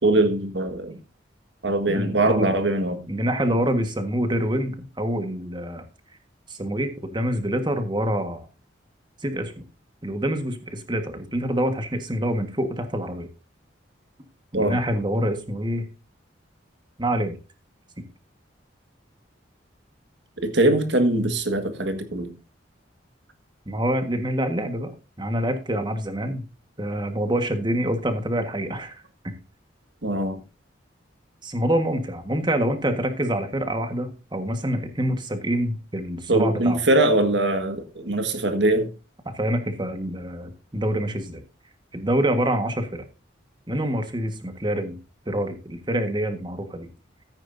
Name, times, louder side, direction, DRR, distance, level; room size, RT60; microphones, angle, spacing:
voice 1, 0.0-1.0 1.6-3.0 14.5-14.8 20.4-22.3 30.0-30.4 36.3-38.9, right 1 dB, 65° right, 1.7 m, -22 dB
voice 2, 1.9-2.5 3.1-5.8 6.5-8.4 9.2-9.6 10.0-13.3 14.5-15.9 17.0-17.3 18.0-18.1 23.7-24.9 25.2-26.4 26.8-29.3 31.4-36.8 39.2-41.4 41.9-43.0 43.7-45.0 45.3-46.9, right 1 dB, 25° right, 1.5 m, -26 dB
14.0 x 9.0 x 2.7 m
head